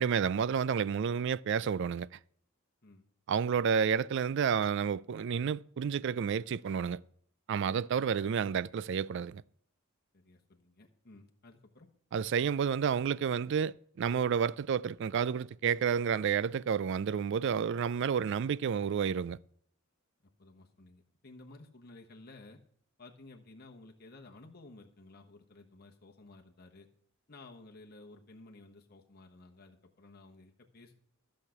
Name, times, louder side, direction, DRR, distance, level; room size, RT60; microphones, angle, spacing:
voice 1, 0.0-2.2 3.3-7.0 7.5-9.4 12.1-19.4, right 7 dB, 55° right, 0.3 m, -30 dB
voice 2, 10.1-11.9 20.4-22.6 23.0-26.9 27.3-31.0, left 2 dB, 45° left, 1.3 m, -54 dB
13.5 x 6.5 x 5.9 m
head